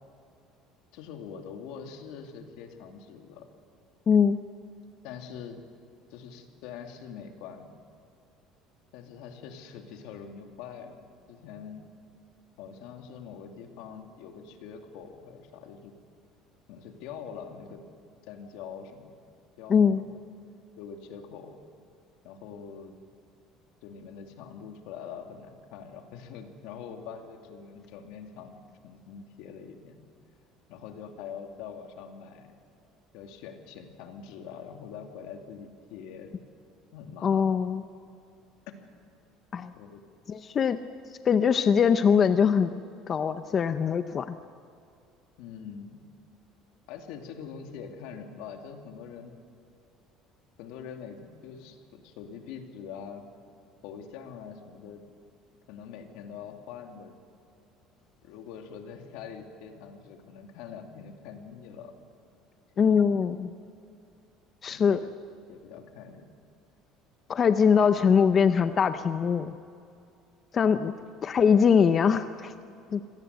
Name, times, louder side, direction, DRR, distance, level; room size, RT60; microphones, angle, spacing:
voice 1, 0.9-3.5 5.0-5.6 6.1-7.7 8.9-11.0 11.3-11.9 12.6-15.9 16.7-17.8 18.2-19.2 19.6-20.2 20.8-21.6 22.2-22.9 23.8-28.6 28.8-30.0 30.7-32.5 33.1-36.4 36.9-37.6 39.8-40.0 45.4-46.0 46.9-49.3 50.6-53.3 53.8-55.0 55.7-57.2 58.2-61.9 62.8-63.2 64.7-65.1 65.5-66.3, left 7 dB, 75° left, 5 dB, 2.5 m, -44 dB
voice 2, 4.1-4.4 19.7-20.0 37.2-37.8 39.5-39.7 40.3-40.8 41.2-42.7 43.1-44.4 62.8-63.5 64.6-65.0 67.3-69.5 70.5-70.9 71.2-72.5 72.9-73.0, left 6 dB, 30° left, 10 dB, 0.6 m, -22 dB
25.5 x 18.0 x 8.1 m, 2.5 s
cardioid pair, 150°, 0 cm